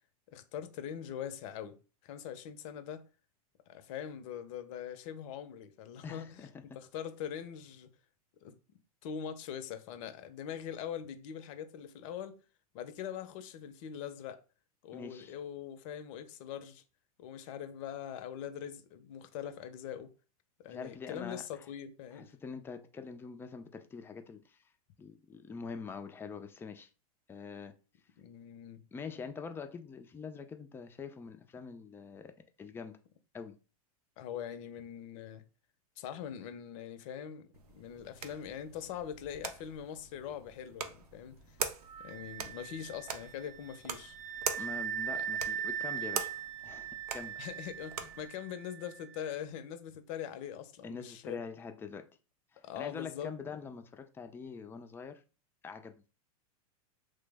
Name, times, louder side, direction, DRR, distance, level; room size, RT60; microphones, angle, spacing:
voice 1, 0.3-1.8 2.0-3.1 3.7-7.9 8.4-8.5 9.0-12.4 12.7-14.4 14.8-16.8 17.2-20.1 20.6-22.3 28.2-28.8 34.2-35.4 36.0-41.6 42.0-44.2 45.1-45.3 47.4-51.4 52.6-53.3, left 9 dB, 55° left, 0.6 m, -42 dB
voice 2, 6.0-6.6 14.9-15.3 20.7-21.7 22.1-24.6 25.0-26.9 27.3-27.8 28.9-32.3 32.6-33.0 33.3-33.6 44.6-46.3 46.6-47.4 50.8-52.1 52.5-55.2 55.6-55.9, left 5 dB, 10° left, 0.3 m, -44 dB
sound 1, 37.5-48.3, right 7 dB, 85° right, 0.5 m, -43 dB
Wind instrument woodwind instrument, 41.9-49.3, right 9 dB, 40° right, 0.6 m, -40 dB
3.2 x 2.0 x 3.3 m
hypercardioid pair, 115°, 19 cm